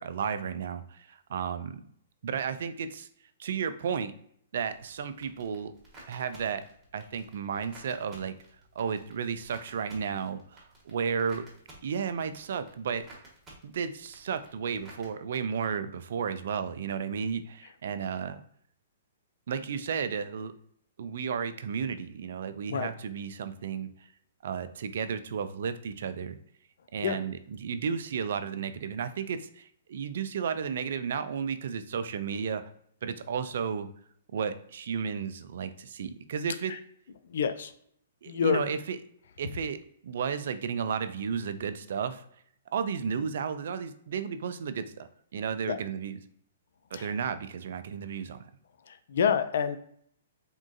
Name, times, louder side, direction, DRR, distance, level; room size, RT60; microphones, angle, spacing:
voice 1, 0.0-1.8 2.2-3.1 3.4-4.1 4.5-5.7 6.1-6.6 6.9-8.3 8.8-11.5 11.8-13.1 13.6-18.4 19.5-20.5 21.0-23.9 24.4-26.4 26.9-32.7 33.0-33.9 34.3-36.7 38.2-39.0 39.4-39.8 40.0-42.2 42.7-45.1 45.3-46.2 46.9-48.5, right 6 dB, 65° right, 11 dB, 0.3 m, -33 dB
sound 1, 4.7-15.1, right 2 dB, 15° right, 1.3 m, -54 dB
voice 2, 37.3-37.7 38.3-38.6 45.7-45.8 46.9-47.1 48.9-49.8, left 7 dB, 65° left, 11 dB, 0.3 m, -27 dB
3.6 x 2.3 x 2.6 m, 0.66 s
hypercardioid pair, 125°, 0 cm